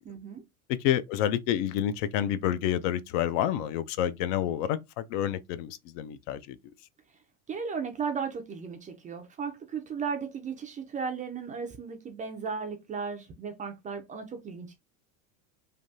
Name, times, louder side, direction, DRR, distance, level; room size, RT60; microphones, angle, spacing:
voice 1, 0.0-0.4 7.5-14.8, right 5 dB, 20° right, 0.3 m, -35 dB
voice 2, 0.7-6.6, left 11 dB, 60° left, 0.5 m, -29 dB
3.3 x 2.2 x 2.6 m
supercardioid pair, 115°, 42 cm